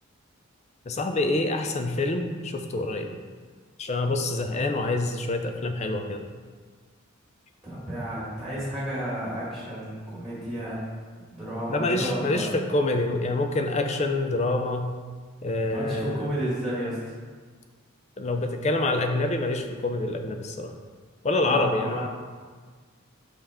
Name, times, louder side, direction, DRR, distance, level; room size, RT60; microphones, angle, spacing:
voice 1, 0.9-3.1 3.8-6.3 11.7-14.9 15.4-16.3 18.2-20.7 21.2-22.1, left 2 dB, 30° left, 6 dB, 0.4 m, -26 dB
voice 2, 7.6-10.9 11.3-12.5 15.7-17.0 21.4-22.0, right 1 dB, ahead, -8 dB, 1.8 m, -32 dB
5.5 x 5.5 x 3.6 m, 1.5 s
head